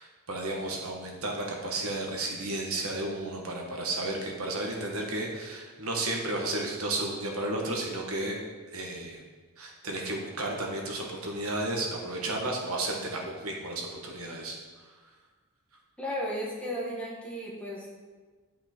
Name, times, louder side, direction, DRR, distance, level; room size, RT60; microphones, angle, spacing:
voice 1, 0.0-8.3 8.7-9.2 9.6-14.6, right 2 dB, 75° right, 0 dB, 1.5 m, -33 dB
voice 2, 16.0-17.9, equal, 5° left, -4 dB, 1.7 m, -34 dB
10.5 x 5.5 x 4.5 m, 1.4 s
head